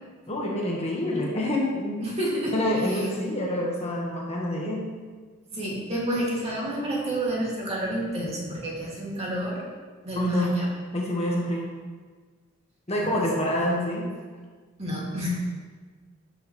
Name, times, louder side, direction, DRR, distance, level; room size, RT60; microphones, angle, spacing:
voice 1, 0.3-2.0 2.5-4.8 10.1-10.5 10.9-11.7 12.9-14.1, left 1 dB, 30° left, -3 dB, 1.4 m, -26 dB
voice 2, 2.0-2.5 2.8-3.1 5.5-9.6 10.0-10.6 12.9-13.3 14.8-15.3, equal, 30° right, -5 dB, 2.3 m, -29 dB
12.0 x 6.4 x 3.2 m, 1.5 s
head